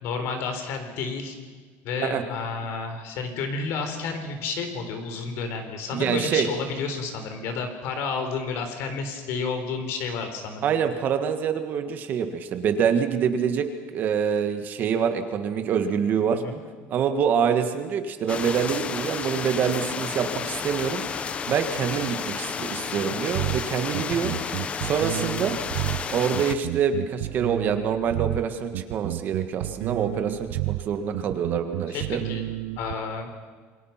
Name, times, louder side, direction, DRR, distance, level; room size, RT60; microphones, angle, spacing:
voice 1, 0.0-1.4 1.8-10.7 16.3-16.6 24.1-24.4 31.9-32.4 32.8-33.3, left 4 dB, 55° left, 7 dB, 3.9 m, -31 dB
voice 2, 5.9-6.5 10.6-16.4 16.9-21.0 21.5-24.3 24.8-25.5 26.1-32.2, right 7 dB, 35° right, 7 dB, 1.7 m, -26 dB
sound 1, 18.3-26.6, left 6 dB, 20° left, 0.9 m, -31 dB
sound 2, 23.3-32.9, right 18 dB, 90° right, 0.8 m, -31 dB
28.0 x 23.0 x 5.9 m, 1.5 s
cardioid pair, 175°, 5 cm